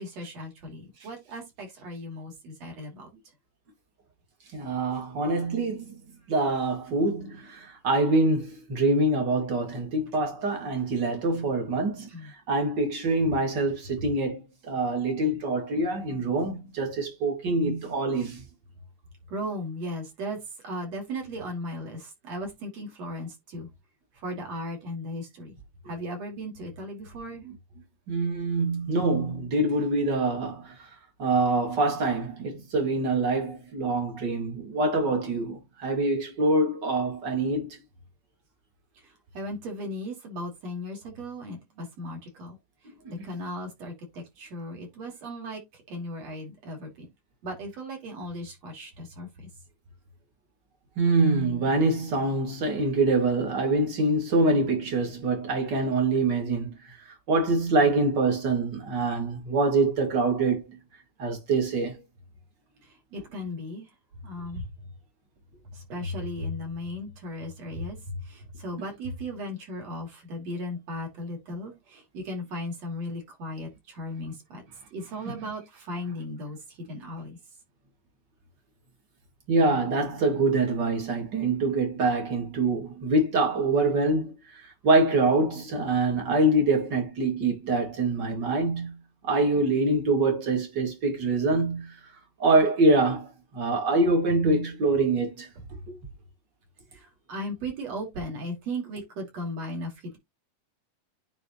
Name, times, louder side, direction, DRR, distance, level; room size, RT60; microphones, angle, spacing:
voice 1, 0.0-3.1 12.1-12.3 19.3-20.4 20.6-23.7 24.2-25.6 25.9-27.4 39.0-42.6 43.1-47.1 47.4-49.5 62.8-63.9 64.2-64.6 65.7-74.6 74.9-77.4 96.9-100.2, equal, 55° right, 4.1 m, -36 dB
voice 2, 4.5-6.0 6.3-12.1 12.5-18.4 27.4-27.5 28.1-30.7 31.2-37.8 51.0-56.8 57.3-60.8 61.2-62.0 75.3-75.4 79.5-84.3 84.8-89.0 89.2-91.9 92.4-93.3 93.5-95.5 95.9-96.0, right 2 dB, 35° right, 2.7 m, -25 dB
9.9 x 4.3 x 3.1 m
omnidirectional pair, 3.7 m